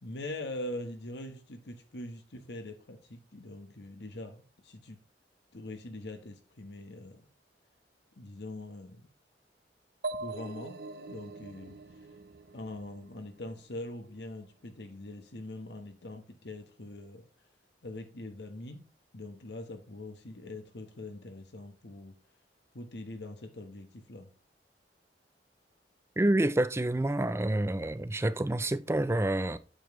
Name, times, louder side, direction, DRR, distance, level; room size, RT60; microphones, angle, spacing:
voice 1, 0.0-5.0 5.5-7.2 8.2-9.1 10.2-10.8 11.1-11.8 12.5-17.2 17.8-18.8 19.1-22.1 22.7-24.3, left 1 dB, 70° left, 1.2 m, -43 dB
sound 1, 10.0-13.7, right 3 dB, 60° right, 0.8 m, -42 dB
voice 2, 26.2-29.6, right 1 dB, 15° right, 0.4 m, -28 dB
9.0 x 7.1 x 3.2 m
head